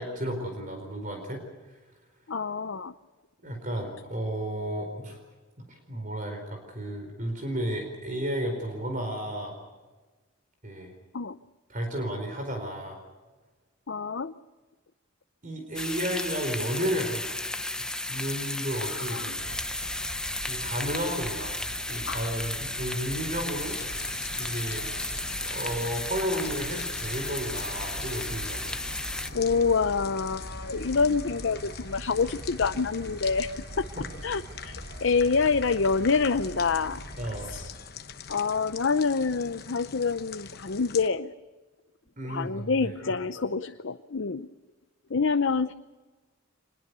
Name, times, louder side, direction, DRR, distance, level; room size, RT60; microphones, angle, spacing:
voice 1, 0.0-1.8 3.4-5.2 5.7-9.5 10.6-10.9 11.7-13.0 15.4-17.4 18.1-19.4 20.5-21.6 21.9-23.8 24.4-25.1 25.4-28.8 33.9-34.0 37.2-37.6 42.2-42.9, equal, 40° right, 4 dB, 4.4 m, -33 dB
voice 2, 2.3-2.9 11.1-11.4 13.9-14.3 19.0-19.4 22.1-22.3 29.3-33.9 34.2-37.0 37.5-37.7 38.3-41.3 42.3-44.5 45.1-45.7, left 4 dB, 65° left, 11 dB, 0.6 m, -27 dB
sound 1, 15.7-29.3, left 2 dB, 5° left, 0.7 m, -34 dB
sound 2, 19.4-37.7, right 1 dB, 65° right, 2.6 m, -43 dB
sound 3, 23.6-41.1, left 6 dB, 50° left, 1.1 m, -44 dB
26.0 x 21.0 x 6.8 m, 1.3 s
head